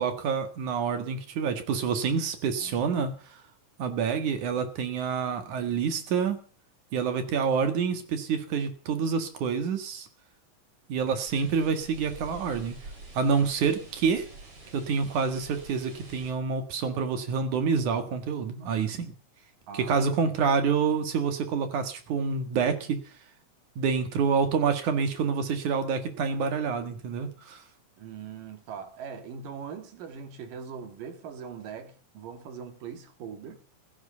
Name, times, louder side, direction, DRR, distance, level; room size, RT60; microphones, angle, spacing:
voice 1, 0.0-3.1 3.8-6.4 6.9-10.1 10.9-12.8 13.1-14.2 14.7-19.1 19.7-23.0 23.8-27.6, right 6 dB, 65° right, 3.2 m, -27 dB
voice 2, 2.6-3.1 19.7-20.1 28.0-33.6, right 6 dB, 85° right, 3.5 m, -41 dB
sound 1, 11.2-16.3, right 3 dB, 45° right, 4.3 m, -47 dB
16.0 x 12.0 x 6.9 m
omnidirectional pair, 3.8 m